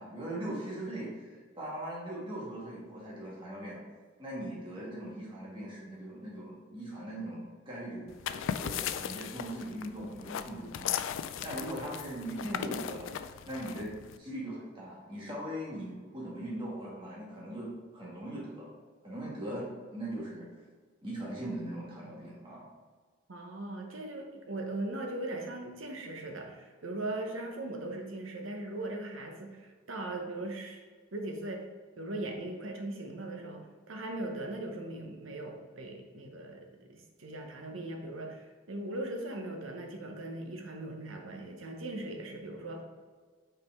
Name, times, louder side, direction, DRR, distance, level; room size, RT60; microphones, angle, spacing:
voice 1, 0.0-3.8 4.2-11.0 11.4-13.9 14.2-18.7 19.0-20.5 21.0-22.7, right 1 dB, 25° right, -5 dB, 1.7 m, -40 dB
sound 1, 8.1-14.2, left 9 dB, 75° left, 0.3 m, -37 dB
voice 2, 23.3-30.8 31.1-31.6 32.0-42.8, right 2 dB, 85° right, 2 dB, 1.0 m, -39 dB
5.5 x 4.9 x 3.5 m, 1.5 s
head